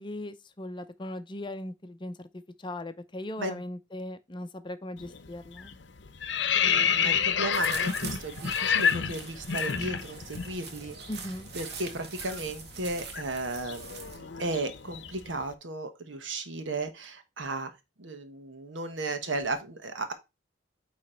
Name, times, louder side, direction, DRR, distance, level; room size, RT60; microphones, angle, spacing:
voice 1, 0.0-5.7 11.1-11.5, left 1 dB, 25° left, 0.6 m, -39 dB
sound 1, 5.0-5.3 5.6-10.5 10.8-11.0 11.3-15.3, left 7 dB, 70° left, 0.7 m, -29 dB
voice 2, 6.6-11.0 11.5-17.7 18.0-20.1, right 2 dB, 90° right, 1.2 m, -35 dB
sound 2, 7.5-14.2, right 5 dB, 60° right, 1.4 m, -43 dB
9.2 x 3.2 x 4.4 m
head